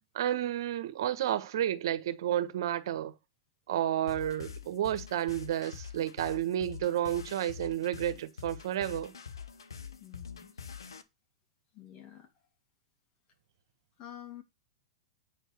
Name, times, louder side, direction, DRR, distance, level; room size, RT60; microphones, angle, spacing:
voice 1, 0.1-3.1 3.7-9.1, right 11 dB, 70° right, 1.3 m, -31 dB
sound 1, 4.1-11.0, left 7 dB, 90° left, 1.1 m, -45 dB
voice 2, 10.0-10.6 11.7-12.3 14.0-14.4, left 11 dB, 45° left, 2.8 m, -48 dB
8.6 x 4.7 x 6.8 m
hypercardioid pair, 110°, 2 cm